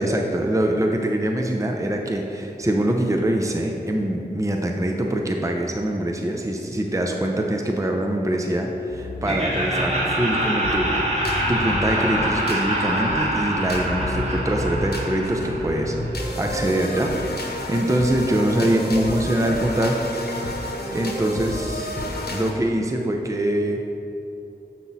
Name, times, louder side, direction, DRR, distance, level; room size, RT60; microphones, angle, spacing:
voice 1, 0.0-20.2 20.6-22.0 22.3-23.8, right 1 dB, 20° right, 2 dB, 0.6 m, -24 dB
sound 1, 8.9-22.5, left 1 dB, 65° left, 1.0 m, -31 dB
Laughter, 9.2-16.2, right 1 dB, 35° right, 1.8 m, -25 dB
7.4 x 5.9 x 4.1 m, 2.8 s
wide cardioid pair, 55°, 17 cm